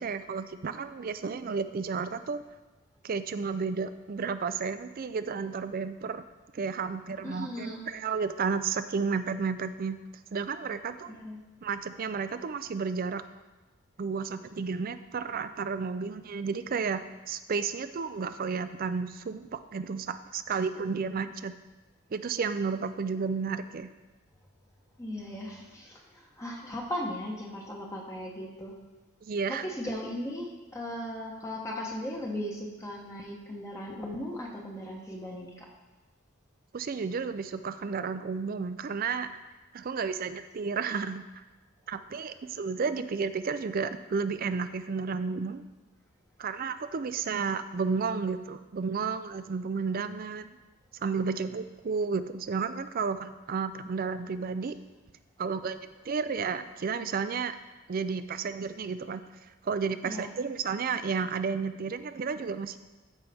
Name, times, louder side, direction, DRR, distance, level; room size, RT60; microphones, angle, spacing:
voice 1, 0.0-2.4 3.0-6.2 6.5-10.0 10.3-11.1 11.6-13.2 14.0-17.0 17.3-21.5 22.1-23.9 29.2-29.7 36.7-39.3 39.7-41.4 41.9-45.6 46.4-50.5 50.9-54.8 55.4-55.8 56.0-57.6 57.9-59.4 59.6-62.8, right 5 dB, 45° right, 11 dB, 0.4 m, -32 dB
voice 2, 7.2-7.9 11.0-11.4 25.0-28.7 29.6-35.7 60.0-60.3, left 1 dB, 15° left, -2 dB, 0.9 m, -37 dB
13.5 x 5.5 x 3.5 m, 1.2 s
head